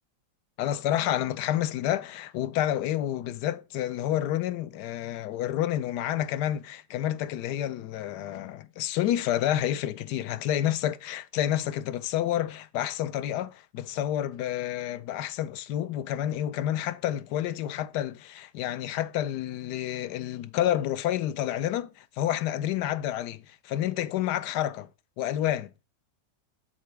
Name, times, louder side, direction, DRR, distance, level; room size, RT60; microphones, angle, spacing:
voice 1, 0.6-24.9 25.2-25.7, left 12 dB, 75° left, 1.1 m, -29 dB
8.3 x 5.7 x 3.3 m
omnidirectional pair, 1.9 m